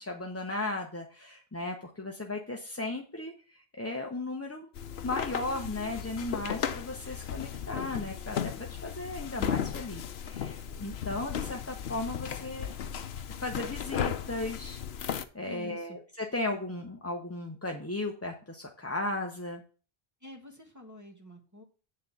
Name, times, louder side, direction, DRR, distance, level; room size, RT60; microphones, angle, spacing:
voice 1, 0.0-4.7 5.0-12.7 13.4-14.8 15.3-19.6, left 2 dB, 15° left, 2 dB, 0.7 m, -36 dB
sound 1, 4.7-15.2, left 8 dB, 75° left, 0.9 m, -35 dB
voice 2, 15.4-16.0 20.2-21.6, left 3 dB, 15° right, 0 dB, 1.4 m, -47 dB
8.5 x 3.9 x 7.0 m, 0.38 s
omnidirectional pair, 1.1 m